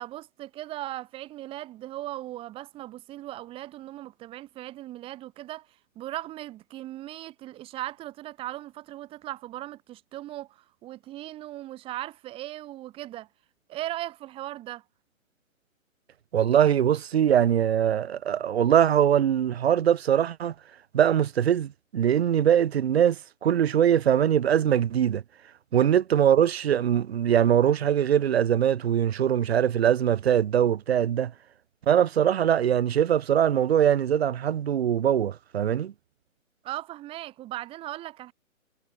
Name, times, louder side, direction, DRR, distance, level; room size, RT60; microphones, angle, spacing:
voice 1, 0.0-5.7 6.0-13.3 13.7-14.8 25.7-25.9 36.6-38.3, right 15 dB, 15° right, 1.7 m, -38 dB
voice 2, 16.3-20.5 20.9-25.2 25.7-31.3 31.9-35.9, right 9 dB, 45° right, 1.0 m, -22 dB
hypercardioid pair, 150°, 42 cm